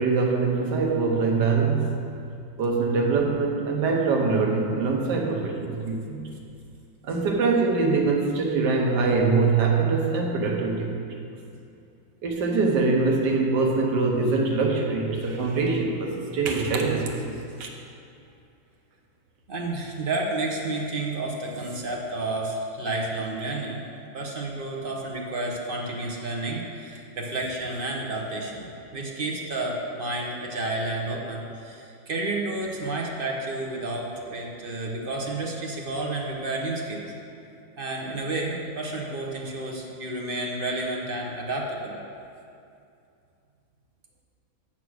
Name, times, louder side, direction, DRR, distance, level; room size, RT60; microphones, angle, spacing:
voice 1, 0.0-2.0 2.6-6.3 7.0-11.0 12.2-17.2 17.6-17.7, right 4 dB, 60° right, 0 dB, 1.5 m, -23 dB
voice 2, 19.5-23.8 24.1-28.7 28.9-37.1 37.8-42.0, right 2 dB, 45° right, -1 dB, 0.7 m, -31 dB
7.4 x 6.0 x 6.3 m, 2.5 s
omnidirectional pair, 2.2 m